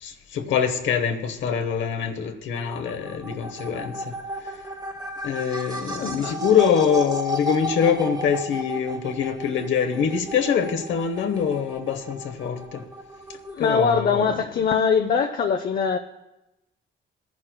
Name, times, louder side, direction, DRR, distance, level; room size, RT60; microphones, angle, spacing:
voice 1, 0.0-4.2 5.2-12.8 13.6-14.4, left 7 dB, 70° left, 0.9 m, -24 dB
sound 1, 2.6-13.8, equal, 20° right, 1.0 m, -34 dB
voice 2, 6.0-6.4 13.5-16.0, left 6 dB, 45° left, 0.6 m, -22 dB
18.0 x 10.5 x 2.2 m
cardioid pair, 90°, 20 cm